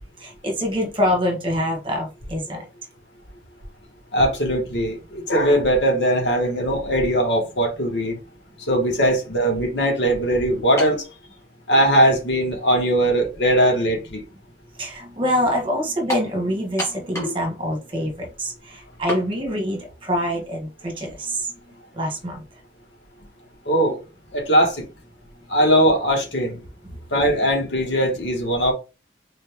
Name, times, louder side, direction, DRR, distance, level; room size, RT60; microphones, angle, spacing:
voice 1, 0.2-2.6 14.8-21.5 21.9-22.4, equal, 30° right, 1.4 m, -25 dB
voice 2, 4.1-8.2 8.7-11.0 11.7-14.2 23.7-24.0 24.3-24.9 25.5-26.6 27.1-28.7, right 1 dB, 85° left, 1.6 m, -20 dB
sound 1, 10.8-11.1 12.0-12.1 16.1-16.3 16.8-17.4 17.7-17.8 19.1-19.3, left 1 dB, 15° left, 1.5 m, -28 dB
3.9 x 3.3 x 3.5 m
head